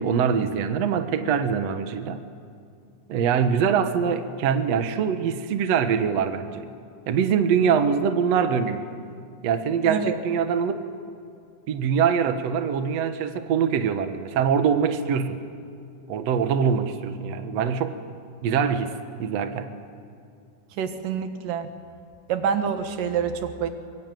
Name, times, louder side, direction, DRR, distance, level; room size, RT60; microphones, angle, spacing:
voice 1, 0.0-2.2 3.1-6.7 7.1-8.8 9.4-10.8 11.7-15.4 16.1-18.0 18.4-18.9 19.2-19.7, right 7 dB, 60° right, 8 dB, 2.2 m, -23 dB
voice 2, 9.9-10.2 20.8-21.7 22.3-23.7, right 7 dB, 85° right, 8 dB, 3.1 m, -26 dB
24.0 x 23.0 x 9.2 m, 2.4 s
omnidirectional pair, 3.7 m